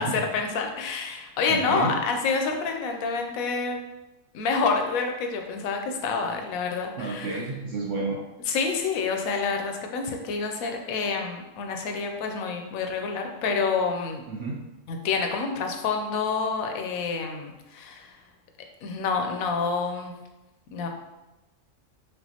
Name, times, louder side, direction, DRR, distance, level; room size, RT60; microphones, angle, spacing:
voice 1, 0.0-3.8 4.3-7.4 8.5-14.2 14.9-18.2 18.8-20.1 20.7-20.9, left 4 dB, 90° left, 3 dB, 1.0 m, -28 dB
voice 2, 1.5-1.9 7.0-8.2 14.3-14.6, right 3 dB, 65° right, -4 dB, 0.9 m, -30 dB
5.4 x 2.4 x 2.8 m, 1.0 s
omnidirectional pair, 1.4 m